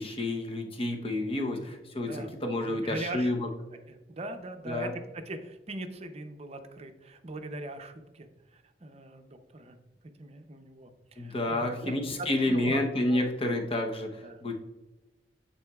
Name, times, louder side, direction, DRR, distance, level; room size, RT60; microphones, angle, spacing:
voice 1, 0.0-3.5 4.7-4.9 11.2-14.5, left 1 dB, 35° left, 3 dB, 0.9 m, -30 dB
voice 2, 2.0-2.3 2.7-3.3 3.9-9.8 10.2-12.8 13.1-13.3 14.2-14.4, right 2 dB, 35° right, 7 dB, 0.6 m, -41 dB
9.6 x 4.3 x 2.3 m, 1.1 s
head